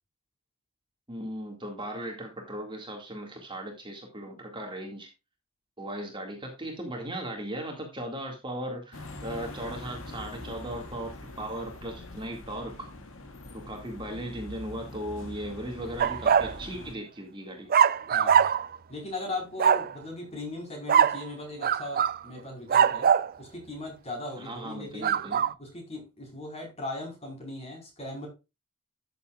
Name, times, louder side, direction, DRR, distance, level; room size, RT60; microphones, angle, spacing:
voice 1, 1.1-5.1 5.8-11.1 11.4-12.9 13.5-17.7 24.4-25.5, right 1 dB, 20° right, 2 dB, 2.1 m, -37 dB
sound 1, 8.9-17.0, left 2 dB, 65° left, 1.9 m, -43 dB
sound 2, 16.0-16.5 17.7-18.8 19.6-19.9 20.9-21.2 21.6-22.2 22.7-23.3 25.0-25.5, right 8 dB, 40° right, 0.4 m, -22 dB
voice 2, 18.1-18.5 18.9-23.1 23.4-25.2 25.6-28.3, left 2 dB, 30° left, 1 dB, 4.6 m, -38 dB
12.5 x 7.1 x 2.4 m, 0.27 s
head